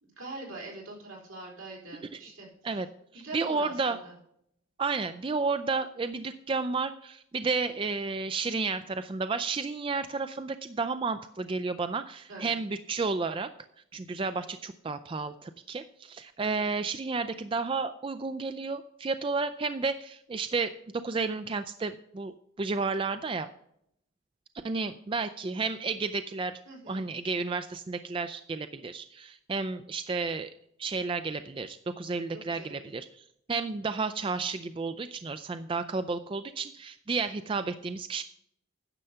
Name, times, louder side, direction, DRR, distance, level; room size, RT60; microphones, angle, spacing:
voice 1, 0.0-2.5 3.1-4.1 12.3-12.6 26.7-27.0 32.3-32.8, right 2 dB, 75° right, -2 dB, 4.0 m, -43 dB
voice 2, 3.1-4.0 4.8-13.5 13.9-23.5 24.6-26.6 26.9-30.5 30.8-38.2, right 4 dB, 25° right, 11 dB, 0.3 m, -32 dB
9.8 x 6.8 x 5.6 m, 0.73 s
head